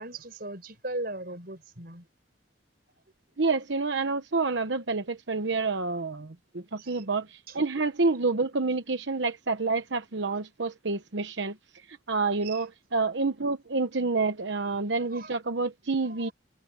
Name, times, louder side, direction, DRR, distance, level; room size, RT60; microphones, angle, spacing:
voice 1, 0.0-2.1 6.8-7.0 7.5-7.6 12.4-12.6 15.0-15.3 16.0-16.3, right 2 dB, 50° right, 5.9 m, -39 dB
voice 2, 3.4-11.6 12.1-16.3, right 3 dB, 70° right, 1.0 m, -28 dB
head